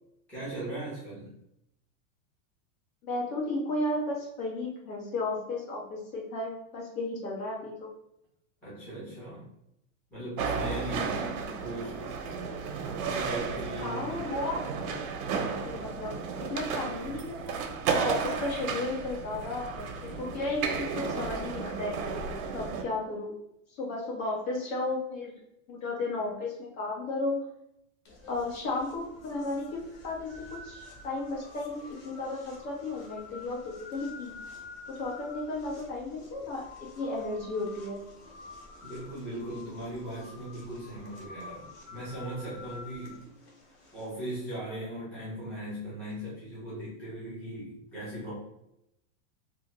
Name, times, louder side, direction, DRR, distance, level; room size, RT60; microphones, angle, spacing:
voice 1, 0.3-1.3 8.6-9.5 10.1-12.0 13.0-14.3 38.8-43.2 43.9-48.3, right 1 dB, 5° left, -11 dB, 0.4 m, -38 dB
voice 2, 3.0-7.9 13.8-14.7 15.6-17.5 18.0-22.1 22.5-23.3 23.8-25.3 25.7-27.5 28.3-30.3 30.6-34.3 34.9-38.0, left 2 dB, 85° left, -2 dB, 1.3 m, -34 dB
sound 1, 10.4-22.8, right 5 dB, 85° right, 0.6 m, -33 dB
sound 2, 28.1-44.4, left 3 dB, 50° left, 0.8 m, -49 dB
2.7 x 2.4 x 3.0 m, 0.80 s
supercardioid pair, 175°, 41 cm